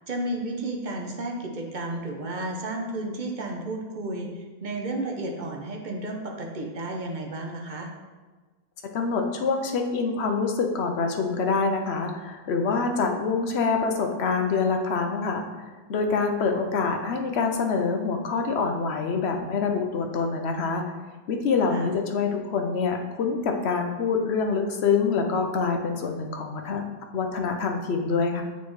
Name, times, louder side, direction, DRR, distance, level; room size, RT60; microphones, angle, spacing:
voice 1, 0.1-7.9 21.7-21.9, right 2 dB, 50° right, 1 dB, 0.9 m, -32 dB
voice 2, 8.8-15.4 15.9-21.0 21.3-26.8 27.1-28.4, left 4 dB, 85° left, 3 dB, 1.0 m, -26 dB
8.3 x 4.1 x 3.1 m, 1.3 s
omnidirectional pair, 1.1 m